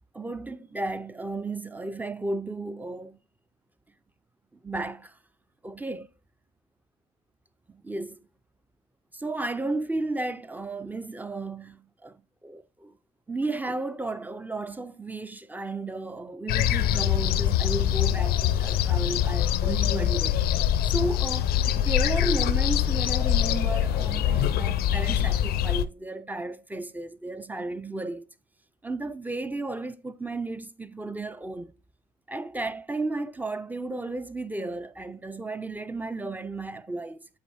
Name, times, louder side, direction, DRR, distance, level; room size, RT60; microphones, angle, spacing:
voice 1, 0.1-3.2 4.6-5.2 5.6-6.1 7.7-8.3 9.1-12.9 13.3-20.4 20.8-28.3 28.8-31.7 32.3-37.3, right 2 dB, 10° right, 0.4 m, -33 dB
sound 1, 16.5-25.9, left 11 dB, 65° left, 0.4 m, -24 dB
8.0 x 3.7 x 3.2 m
cardioid pair, 110°, 17 cm